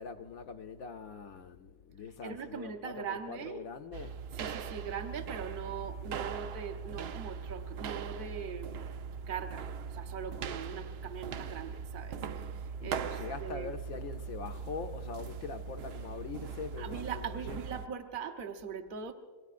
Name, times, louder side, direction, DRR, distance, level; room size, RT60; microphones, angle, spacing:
voice 1, 0.0-4.2 12.8-17.6, left 5 dB, 65° left, 1.1 m, -43 dB
voice 2, 2.2-3.6 4.3-8.9 9.3-13.7 16.8-19.1, right 7 dB, 40° right, 1.0 m, -41 dB
sound 1, 3.9-17.9, right 6 dB, 80° right, 0.5 m, -40 dB
26.5 x 22.0 x 2.5 m
omnidirectional pair, 1.7 m